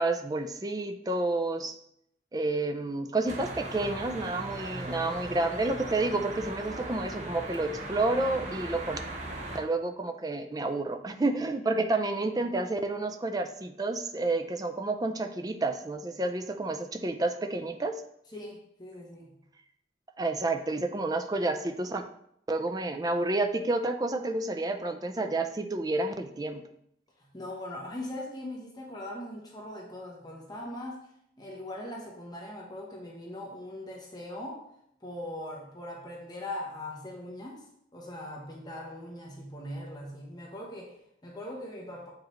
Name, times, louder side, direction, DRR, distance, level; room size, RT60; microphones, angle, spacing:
voice 1, 0.0-1.8 2.3-9.0 9.5-18.0 20.2-22.0 22.5-26.6, right 2 dB, 20° right, 6 dB, 0.4 m, -30 dB
sound 1, 3.3-9.6, right 2 dB, 40° right, 0.9 m, -38 dB
voice 2, 18.3-19.3 27.2-31.1 31.4-34.7 35.0-37.7 37.9-42.1, left 1 dB, 20° left, -2 dB, 0.9 m, -40 dB
7.5 x 4.8 x 3.1 m, 0.73 s
head